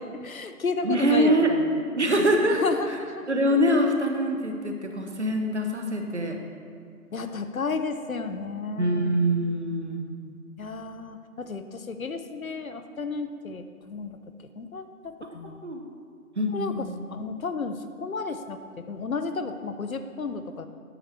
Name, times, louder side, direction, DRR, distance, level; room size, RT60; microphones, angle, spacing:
voice 1, 0.0-1.6 2.6-3.3 7.1-9.2 10.6-14.2 14.6-15.6 16.5-18.6 18.9-20.7, left 4 dB, 65° left, 8 dB, 0.7 m, -32 dB
voice 2, 0.8-1.5 2.0-2.6 2.9-3.0 3.3-6.4 8.8-10.1 15.4-15.8 16.4-17.0, equal, 50° right, 3 dB, 0.9 m, -24 dB
8.7 x 4.5 x 6.6 m, 2.1 s
figure-of-eight pair, 160°, 46 cm